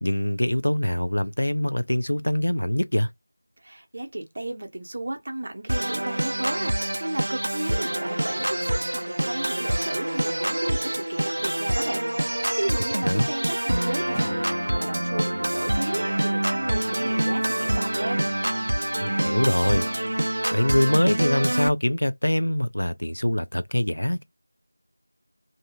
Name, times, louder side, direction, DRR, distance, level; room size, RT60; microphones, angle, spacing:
voice 1, 0.0-3.1 13.0-13.3 19.0-19.9 20.5-24.2, left 1 dB, 75° left, 0.5 m, -24 dB
voice 2, 3.6-18.3, right 1 dB, 35° right, 0.8 m, -34 dB
Organ, 5.7-21.7, right 1 dB, 60° right, 0.4 m, -26 dB
sound 1, 14.1-18.4, left 2 dB, 5° left, 0.5 m, -41 dB
2.7 x 2.6 x 2.3 m
figure-of-eight pair, 175°, 0 cm